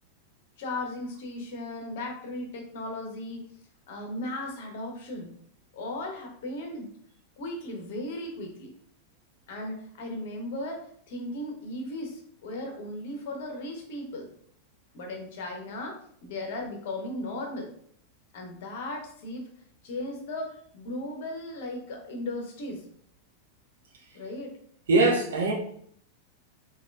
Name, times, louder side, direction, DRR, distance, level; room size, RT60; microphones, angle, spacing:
voice 1, 0.6-3.4 3.9-5.3 5.7-6.9 7.4-8.7 9.5-14.3 14.9-17.7 18.3-19.5 19.8-22.8 24.1-24.5, left 1 dB, 55° left, 1 dB, 0.8 m, -36 dB
voice 2, 24.9-25.5, right 3 dB, 65° right, 1 dB, 0.7 m, -21 dB
3.7 x 2.8 x 2.3 m, 0.63 s
figure-of-eight pair, 90°, 0 cm